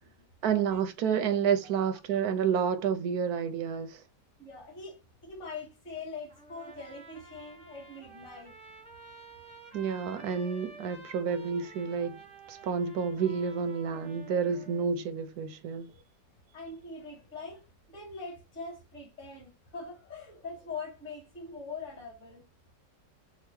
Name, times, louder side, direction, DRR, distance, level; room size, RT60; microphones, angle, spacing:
voice 1, 0.4-4.0 9.7-12.2 12.5-15.9, right 7 dB, 70° right, 1.0 m, -29 dB
voice 2, 4.4-8.5 12.6-12.7 15.9-16.0 16.5-22.4, left 4 dB, 40° left, 2.4 m, -43 dB
Trumpet, 6.3-14.9, right 3 dB, 5° left, 0.7 m, -51 dB
5.2 x 2.3 x 3.1 m
omnidirectional pair, 1.9 m